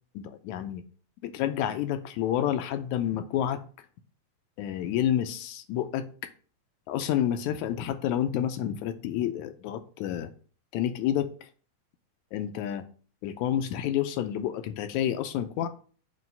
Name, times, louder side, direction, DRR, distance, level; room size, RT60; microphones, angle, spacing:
voice 1, 0.2-0.8 1.2-3.6 4.6-6.1 6.9-10.3 10.7-11.3 12.3-12.8 13.2-15.7, left 10 dB, 80° left, 2.0 m, -29 dB
7.6 x 2.9 x 5.5 m
omnidirectional pair, 3.5 m